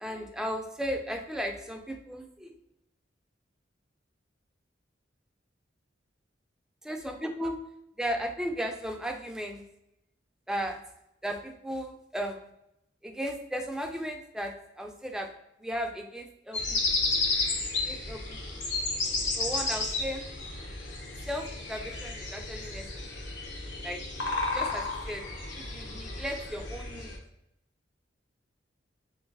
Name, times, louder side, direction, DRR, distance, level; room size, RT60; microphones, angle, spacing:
voice 1, 0.0-2.6 6.9-7.6 8.0-9.7 10.5-10.8 11.2-12.4 13.0-15.3 15.6-16.8 17.8-18.5 19.4-20.3 21.2-23.1 23.8-24.0 24.5-25.2 25.5-27.1, equal, 5° right, 3 dB, 0.3 m, -35 dB
sound 1, 16.5-27.2, left 3 dB, 70° left, 0.7 m, -32 dB
3.1 x 2.5 x 3.4 m, 0.82 s
head